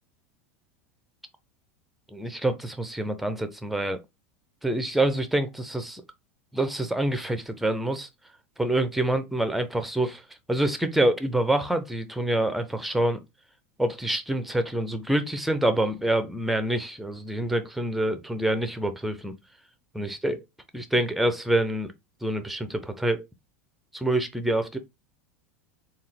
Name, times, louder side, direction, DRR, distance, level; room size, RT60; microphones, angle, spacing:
voice 1, 2.1-4.0 4.6-6.0 6.5-8.1 8.6-10.2 10.5-13.2 13.8-19.3 19.9-20.4 20.7-21.9 22.2-23.3 23.9-24.8, right 1 dB, ahead, 0.6 m, -26 dB
3.6 x 2.4 x 3.3 m
hypercardioid pair, 90°, 7 cm